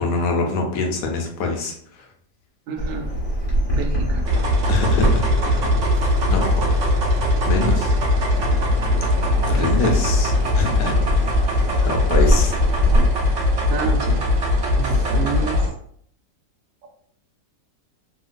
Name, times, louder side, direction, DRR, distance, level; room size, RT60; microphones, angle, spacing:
voice 1, 0.0-2.1 4.7-5.6 6.3-6.6 7.4-7.9 9.5-10.9 11.8-12.6 14.8-14.9, left 3 dB, 75° left, 2 dB, 1.1 m, -24 dB
voice 2, 2.7-3.1 3.7-4.2 9.5-9.9 13.7-14.2 14.7-15.6 16.8-16.9, right 4 dB, 85° right, 2 dB, 1.3 m, -29 dB
Bird vocalization bird call bird song, 2.8-13.0, equal, 35° left, 1.1 m, -25 dB
sound 1, 4.3-15.7, left 1 dB, 60° right, 0.8 m, -20 dB
2.9 x 2.8 x 2.5 m, 0.64 s
omnidirectional pair, 1.9 m